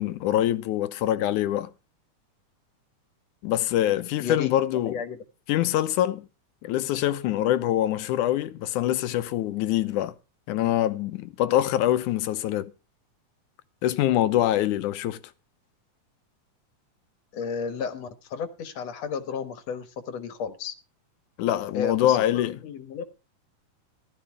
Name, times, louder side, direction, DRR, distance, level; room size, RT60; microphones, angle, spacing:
voice 1, 0.0-1.7 3.4-5.0 5.5-6.3 6.6-10.2 10.5-12.7 13.8-15.2 21.4-22.6, left 13 dB, 85° left, 2.3 m, -24 dB
voice 2, 4.2-4.5 4.8-5.2 17.3-20.7 21.7-23.0, left 6 dB, 60° left, 2.4 m, -33 dB
15.0 x 13.0 x 3.5 m
omnidirectional pair, 3.5 m